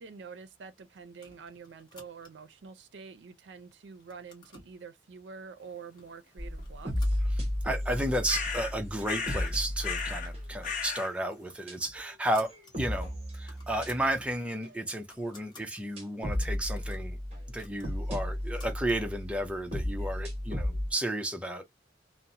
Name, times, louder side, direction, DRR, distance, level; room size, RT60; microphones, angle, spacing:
voice 1, 0.0-7.2, right 5 dB, 85° right, 0.4 m, -47 dB
sound 1, 1.1-2.6 3.1-3.6 3.9-4.8 5.5-5.6 6.0-6.2 6.6-7.8 8.2-8.3 8.5-8.6 9.3-10.2 10.5-10.7 11.1-12.7 13.1-13.2 13.4-14.2 14.6-15.8 16.3-19.0, left 2 dB, 25° left, 1.0 m, -56 dB
sound 2, 6.4-10.8 11.7-12.0 12.5-14.3 14.6-14.7 16.0-20.9, left 1 dB, 35° right, 0.9 m, -34 dB
voice 2, 7.6-12.5 12.8-17.2 17.5-21.7, right 1 dB, 5° right, 0.4 m, -33 dB
sound 3, 8.3-8.7 9.0-9.5 9.8-10.3 10.6-11.1, left 5 dB, 45° left, 0.6 m, -34 dB
2.8 x 2.0 x 2.6 m
head